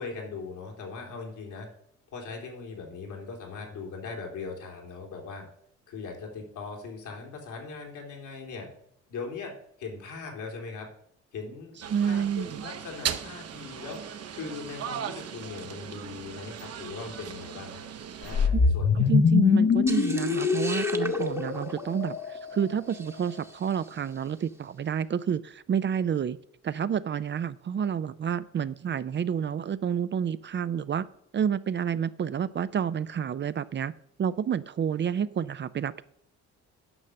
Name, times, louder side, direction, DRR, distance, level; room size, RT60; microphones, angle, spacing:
voice 1, 0.0-1.7 2.1-5.5 5.9-8.7 9.1-10.9 11.3-17.8 18.2-19.1, left 4 dB, 80° left, 1 dB, 3.2 m, -40 dB
sound 1, 11.8-18.5, right 8 dB, 55° right, 0.9 m, -38 dB
voice 2, 11.9-12.7 18.5-18.6 18.9-26.4 26.6-31.0 31.3-33.9 34.2-36.0, right 8 dB, 40° right, 15 dB, 0.5 m, -29 dB
sound 2, 18.2-22.6, left 5 dB, 40° left, 0.8 m, -24 dB
sound 3, 19.9-24.2, right 1 dB, 10° right, 1.0 m, -40 dB
9.9 x 5.7 x 6.4 m, 0.70 s
cardioid pair, 90°, 30 cm